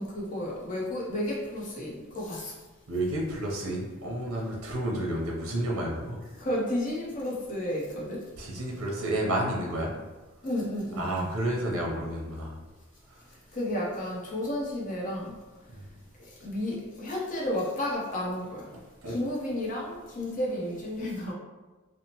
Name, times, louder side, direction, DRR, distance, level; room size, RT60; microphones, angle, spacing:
voice 1, 0.0-2.5 6.4-8.2 10.4-11.3 13.5-15.3 16.2-18.6 19.1-21.3, left 1 dB, 40° left, -4 dB, 0.6 m, -32 dB
voice 2, 2.9-6.2 8.4-9.9 11.0-12.6 15.7-15.8 18.7-19.2, right 1 dB, 80° right, -2 dB, 0.6 m, -31 dB
2.8 x 2.0 x 2.8 m, 1.2 s
head